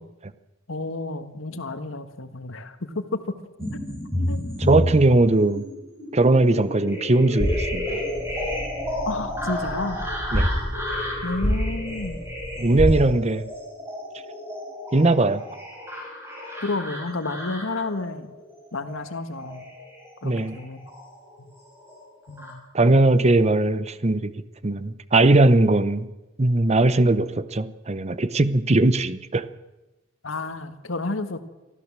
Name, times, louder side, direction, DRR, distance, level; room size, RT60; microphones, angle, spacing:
voice 1, 0.7-3.3 4.3-4.4 9.0-10.0 11.2-12.2 16.6-18.3 18.7-19.7 20.2-20.8 21.4-21.5 22.3-22.7 30.2-31.4, left 2 dB, 75° left, 9 dB, 1.6 m, -31 dB
sound 1, 3.6-21.3 21.7-22.5, left 1 dB, 15° right, 6.5 m, -32 dB
voice 2, 4.6-5.6 6.1-8.0 10.3-10.5 12.6-13.5 14.9-15.4 20.2-20.6 22.7-24.3 24.6-26.1 26.4-29.5, right 2 dB, 35° right, 14 dB, 0.8 m, -19 dB
sound 2, 7.4-13.0, equal, 15° left, 6.8 m, -28 dB
24.0 x 14.5 x 7.4 m, 1.1 s
head